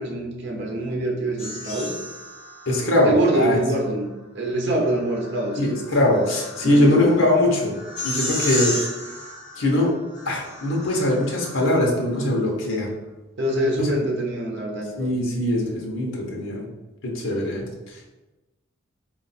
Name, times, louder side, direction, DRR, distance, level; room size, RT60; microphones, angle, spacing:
voice 1, 0.0-1.9 3.0-5.7 6.6-7.2 13.4-15.1, right 1 dB, 60° right, 0 dB, 0.9 m, -25 dB
sound 1, 1.4-3.3 4.8-12.0, left 1 dB, 40° left, 1.2 m, -34 dB
voice 2, 2.7-3.6 5.6-7.7 8.0-8.9 9.6-9.9 10.2-12.9 13.8-13.9 15.0-16.7 17.0-18.0, left 1 dB, 75° left, -1 dB, 0.9 m, -21 dB
3.9 x 2.5 x 4.1 m, 1.1 s
head